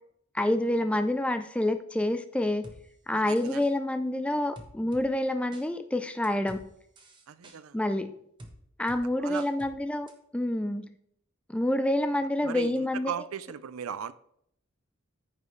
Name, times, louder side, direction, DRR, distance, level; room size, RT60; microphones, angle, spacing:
voice 1, 0.3-2.7 3.1-6.7 7.7-8.1 8.8-10.1 10.3-10.9 11.5-13.1, left 1 dB, 5° left, 0.4 m, -27 dB
sound 1, 2.6-2.8 3.4-3.7 4.6-5.1 5.5-5.6 6.2-6.6 7.0-7.6 8.4-8.5 8.9-9.0 9.4-9.7 10.1-10.2, right 1 dB, 20° right, 1.1 m, -48 dB
voice 2, 3.1-3.6 7.3-7.8 9.2-9.5 12.4-14.1, right 7 dB, 75° right, 0.4 m, -37 dB
14.0 x 5.3 x 3.2 m
head